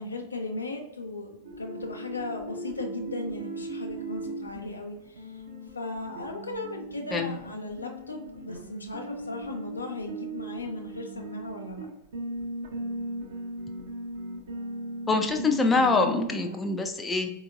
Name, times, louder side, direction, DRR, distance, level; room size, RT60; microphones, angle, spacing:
voice 1, 0.0-5.4 5.7-11.9, left 2 dB, 80° left, 1 dB, 0.6 m, -37 dB
sound 1, 1.4-16.6, right 1 dB, 60° right, 0.7 m, -38 dB
voice 2, 15.1-17.3, left 3 dB, 15° left, 4 dB, 0.4 m, -25 dB
4.2 x 2.8 x 2.5 m, 0.91 s
figure-of-eight pair, 90°, 0 cm